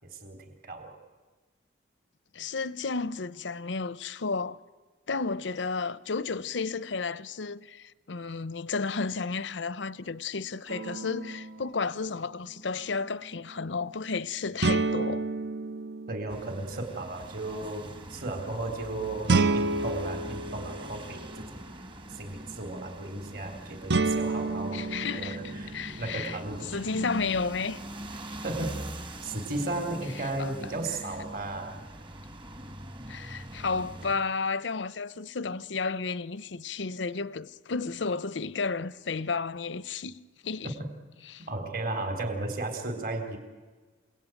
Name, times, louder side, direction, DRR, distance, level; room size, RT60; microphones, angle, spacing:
voice 1, 0.0-0.9 16.1-21.6 22.1-24.9 25.1-26.8 28.1-31.8 40.6-40.9 41.5-43.4, right 2 dB, 50° right, 3.8 m, -35 dB
voice 2, 2.3-4.6 5.1-15.3 24.7-26.4 26.7-27.8 30.4-30.5 33.1-40.8 41.2-41.5, left 4 dB, 80° left, 0.8 m, -32 dB
sound 1, 10.7-11.6 14.6-16.8 19.3-21.4 23.9-26.1, right 3 dB, 65° right, 0.9 m, -29 dB
sound 2, 16.3-34.2, right 1 dB, 25° right, 1.5 m, -42 dB
28.5 x 19.0 x 9.2 m
head